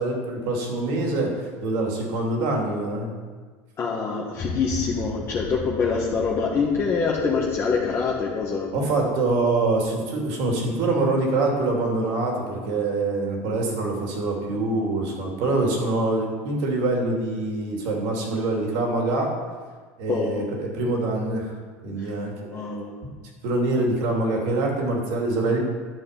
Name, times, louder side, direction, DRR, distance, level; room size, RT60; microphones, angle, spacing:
voice 1, 0.0-3.1 8.7-19.3 20.0-21.5 21.8-22.3 23.4-25.6, right 2 dB, 70° right, 0 dB, 2.8 m, -25 dB
voice 2, 3.8-8.9 20.1-20.5 22.0-22.1 22.4-23.0, left 5 dB, 35° left, -3 dB, 1.3 m, -25 dB
sound 1, 4.3-10.5, left 3 dB, 55° left, 2.0 m, -38 dB
11.0 x 7.0 x 5.3 m, 1.5 s
supercardioid pair, 120°, 7 cm